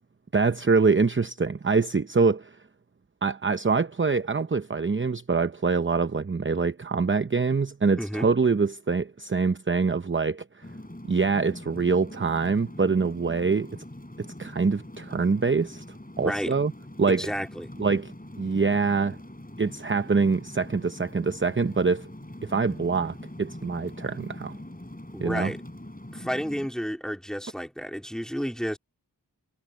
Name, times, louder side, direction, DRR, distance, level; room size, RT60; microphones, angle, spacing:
voice 1, 0.3-2.6 3.2-10.6 11.1-13.8 14.2-15.8 16.2-16.7 17.0-17.3 17.8-19.2 19.6-22.1 22.4-24.6 25.2-25.5, right 4 dB, 30° right, 0.7 m, -25 dB
voice 2, 8.0-8.3 16.2-16.5 17.1-17.7 25.1-25.6 26.1-28.8, equal, ahead, 3.3 m, -31 dB
sound 1, 10.6-26.7, left 1 dB, 20° left, 7.8 m, -43 dB
wide cardioid pair, 45°, 40 cm